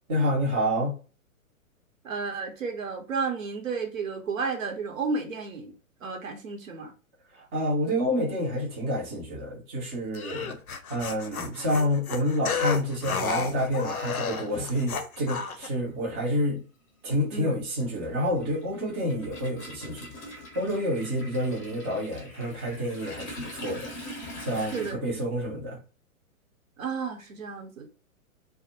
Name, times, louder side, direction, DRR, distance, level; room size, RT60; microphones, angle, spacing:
voice 1, 0.1-1.0 7.4-10.6 10.9-16.6 17.0-20.1 20.5-23.9 24.4-25.8, equal, 20° right, 0.5 m, -28 dB
voice 2, 2.0-5.7 6.0-6.9 17.3-17.6 24.7-25.0 26.8-27.9, right 4 dB, 65° right, 0.8 m, -32 dB
sound 1, 10.1-15.7, left 5 dB, 80° left, 0.5 m, -32 dB
Toilet flush, 15.8-16.0 16.3-24.9, left 1 dB, 25° left, 0.6 m, -43 dB
2.2 x 2.0 x 2.8 m
figure-of-eight pair, 115°, 42 cm